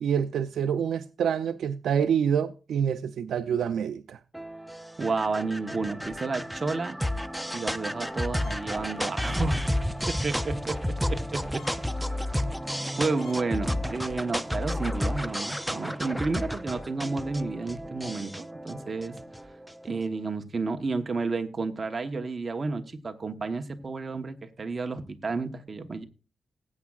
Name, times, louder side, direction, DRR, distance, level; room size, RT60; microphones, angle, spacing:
voice 1, 0.0-4.2, right 8 dB, 80° right, 0.5 m, -27 dB
sound 1, 4.3-19.9, equal, ahead, 0.4 m, -32 dB
voice 2, 5.0-7.0 7.5-9.7 10.1-11.7 12.0-12.4 13.0-19.2 19.8-26.0, right 3 dB, 25° right, 1.0 m, -31 dB
sound 2, 8.4-8.7 9.2-9.3 10.0-10.3 10.6-10.9 11.3-11.4 11.6-11.8 12.4-12.5 12.9-13.0 13.2-13.4 13.9-14.1, left 5 dB, 60° left, 2.4 m, -50 dB
19.5 x 8.5 x 2.4 m
wide cardioid pair, 180°, 0 cm